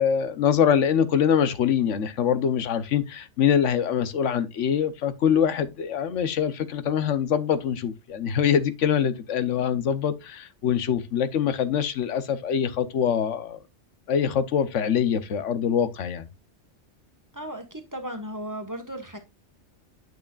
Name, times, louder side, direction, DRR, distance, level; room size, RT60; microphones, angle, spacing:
voice 1, 0.0-13.6 14.1-16.3, left 8 dB, 85° left, 1.2 m, -24 dB
voice 2, 17.3-19.2, right 1 dB, 15° right, 1.4 m, -35 dB
8.8 x 6.3 x 2.4 m
omnidirectional pair, 1.2 m